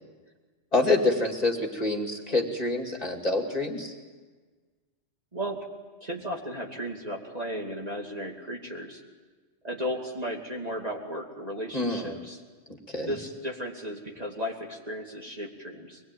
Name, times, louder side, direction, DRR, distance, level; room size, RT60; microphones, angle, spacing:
voice 1, 0.7-3.9 11.7-12.2 12.9-13.1, left 2 dB, 35° left, 2 dB, 2.6 m, -26 dB
voice 2, 5.3-5.6 6.0-9.0 9.6-12.4 13.0-16.0, equal, 30° right, -1 dB, 2.8 m, -35 dB
24.0 x 20.5 x 9.3 m, 1.4 s
omnidirectional pair, 1.2 m